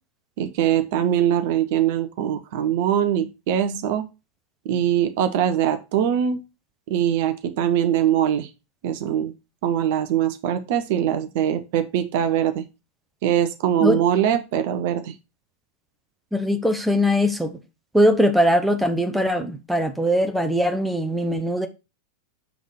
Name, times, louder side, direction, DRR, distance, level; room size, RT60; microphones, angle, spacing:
voice 1, 0.4-4.1 4.6-6.4 6.9-8.5 8.8-9.3 9.6-12.6 13.2-15.1, right 10 dB, 50° right, 0.8 m, -22 dB
voice 2, 16.3-17.5 17.9-21.7, equal, 5° right, 1.0 m, -21 dB
7.1 x 3.7 x 6.3 m
figure-of-eight pair, 90°, 0 cm